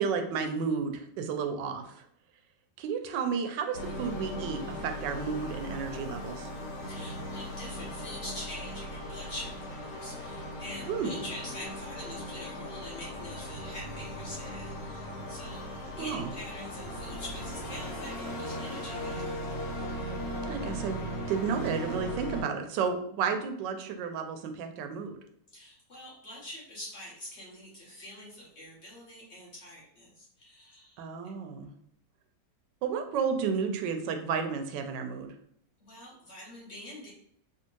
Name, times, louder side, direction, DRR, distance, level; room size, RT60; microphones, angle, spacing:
voice 1, 0.0-2.0 2.8-6.5 10.9-11.1 16.0-16.2 20.5-21.0 21.3-25.2 31.0-31.7 32.8-35.3, right 6 dB, 90° right, 6 dB, 1.2 m, -32 dB
sound 1, 3.7-22.4, equal, 80° left, 1.4 m, -38 dB
voice 2, 6.8-15.6 16.0-19.4 25.5-31.1 35.8-37.1, left 1 dB, 45° left, -5 dB, 1.1 m, -45 dB
3.4 x 2.8 x 3.0 m, 0.70 s
omnidirectional pair, 1.9 m